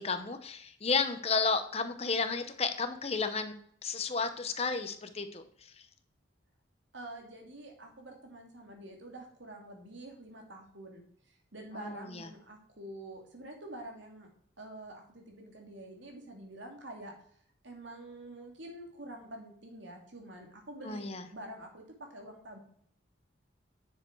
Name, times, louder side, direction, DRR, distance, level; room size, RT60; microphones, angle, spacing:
voice 1, 0.0-3.5 3.8-5.4 11.8-12.3 20.8-21.3, left 4 dB, 30° left, 9 dB, 0.8 m, -32 dB
voice 2, 6.9-14.3 14.6-17.1 17.6-21.1 21.3-21.8 22.1-22.6, right 1 dB, 70° right, 2 dB, 2.6 m, -47 dB
10.5 x 7.0 x 4.6 m, 0.63 s
head